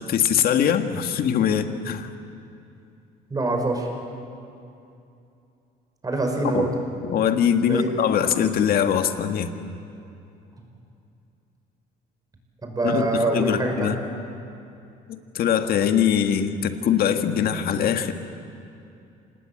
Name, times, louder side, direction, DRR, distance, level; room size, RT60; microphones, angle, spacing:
voice 1, 0.0-2.1 6.5-6.7 7.1-9.5 12.8-14.0 15.1-18.1, left 8 dB, 65° left, 7 dB, 1.7 m, -22 dB
voice 2, 3.3-3.9 6.0-6.7 7.6-7.9 12.6-13.9, right 2 dB, 20° right, 3 dB, 5.6 m, -24 dB
27.0 x 19.5 x 8.8 m, 2.7 s
cardioid pair, 110°, 17 cm